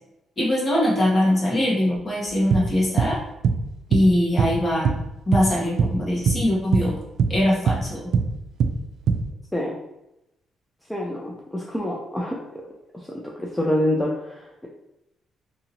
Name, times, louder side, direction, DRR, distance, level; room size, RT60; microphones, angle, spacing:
voice 1, 0.4-3.2 3.9-4.9 5.3-7.0 7.3-8.1, left 1 dB, 30° left, -4 dB, 1.2 m, -22 dB
sound 1, 2.3-5.5 5.8-6.0 6.3-9.3, right 5 dB, 65° right, 0.3 m, -22 dB
voice 2, 10.9-12.4 12.9-13.1 13.4-14.7, left 1 dB, 10° left, -3 dB, 0.5 m, -26 dB
2.7 x 2.6 x 2.9 m, 0.89 s
cardioid pair, 90°, 0 cm